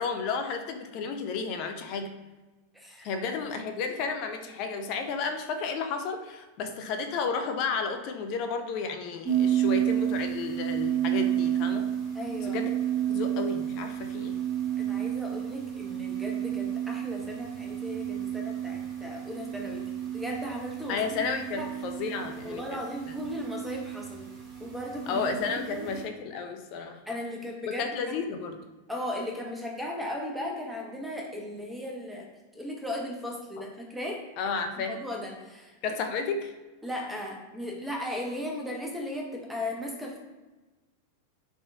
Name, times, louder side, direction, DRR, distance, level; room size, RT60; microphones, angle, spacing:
voice 1, 0.0-2.2 3.0-11.9 12.4-12.7 13.1-14.4 20.9-22.8 25.1-27.0 27.7-28.6 34.4-35.0 35.8-36.5, left 5 dB, 40° left, 7 dB, 0.4 m, -32 dB
voice 2, 2.7-3.1 12.1-12.6 14.8-21.2 21.5-21.7 22.4-24.3 24.6-26.0 27.1-28.2 28.9-34.2 34.8-35.9 36.8-40.2, left 1 dB, 5° right, 0 dB, 0.8 m, -37 dB
sound 1, 9.3-26.0, right 11 dB, 30° right, 1.0 m, -31 dB
3.7 x 2.3 x 3.4 m, 1.2 s
figure-of-eight pair, 90°, 0 cm